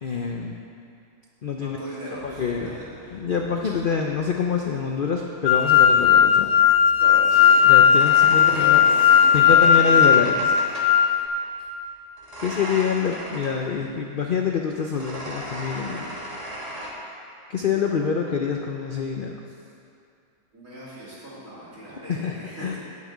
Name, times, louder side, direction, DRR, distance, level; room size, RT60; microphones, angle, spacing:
voice 1, 0.0-0.6 1.4-1.8 2.1-2.7 3.1-6.5 7.6-8.8 9.3-10.6 12.4-16.1 17.5-19.4 22.1-22.8, left 6 dB, 55° left, 1 dB, 0.6 m, -26 dB
voice 2, 1.6-3.2 7.0-7.6 8.3-10.1 20.5-22.8, equal, 55° right, -8 dB, 3.4 m, -37 dB
sound 1, 2.2-4.3 5.5-11.0 12.2-13.6 14.8-16.9, equal, 25° right, 1.4 m, -37 dB
sound 2, 5.5-11.3, left 8 dB, 80° left, 1.2 m, -16 dB
9.2 x 5.9 x 8.4 m, 2.6 s
omnidirectional pair, 1.6 m